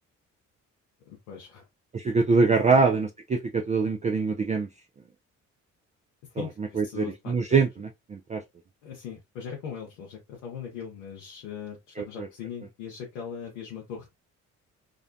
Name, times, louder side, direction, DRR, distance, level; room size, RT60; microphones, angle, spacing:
voice 1, 1.1-1.6 2.6-2.9 6.3-7.6 8.8-14.2, left 7 dB, 85° left, 0.7 m, -40 dB
voice 2, 1.9-4.7 6.4-8.4 12.0-12.3, right 4 dB, 20° right, 0.4 m, -24 dB
2.4 x 2.1 x 2.5 m
hypercardioid pair, 45°, 38 cm